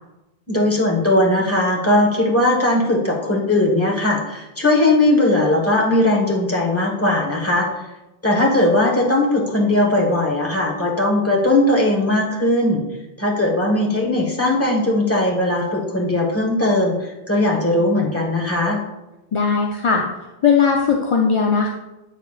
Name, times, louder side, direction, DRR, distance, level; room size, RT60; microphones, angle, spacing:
voice 1, 0.5-7.7 8.2-12.8 13.2-18.8, left 1 dB, 15° left, -2 dB, 1.3 m, -18 dB
voice 2, 19.3-20.0 20.4-21.7, left 6 dB, 40° left, 0 dB, 0.5 m, -18 dB
8.0 x 7.2 x 2.4 m, 1.0 s
omnidirectional pair, 1.0 m